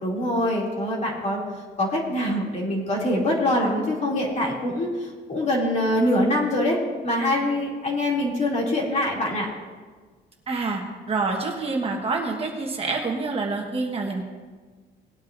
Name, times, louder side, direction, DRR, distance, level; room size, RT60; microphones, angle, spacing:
voice 1, 0.0-1.4 1.8-4.9 5.3-6.8 7.0-9.5, left 1 dB, 40° left, -3 dB, 2.9 m, -24 dB
voice 2, 10.5-14.2, right 3 dB, 30° right, 0 dB, 1.4 m, -27 dB
19.0 x 9.2 x 2.7 m, 1.4 s
cardioid pair, 135°, 19 cm